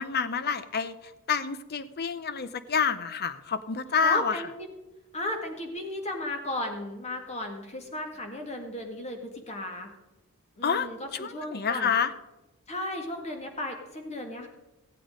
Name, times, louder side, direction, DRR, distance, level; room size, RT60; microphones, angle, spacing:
voice 1, 0.0-4.4 10.6-12.1, left 6 dB, 50° left, 13 dB, 0.7 m, -28 dB
voice 2, 4.0-4.7 5.1-9.9 10.6-11.9 12.7-14.5, left 1 dB, 30° left, 4 dB, 1.9 m, -35 dB
15.0 x 8.5 x 5.1 m, 1.0 s
head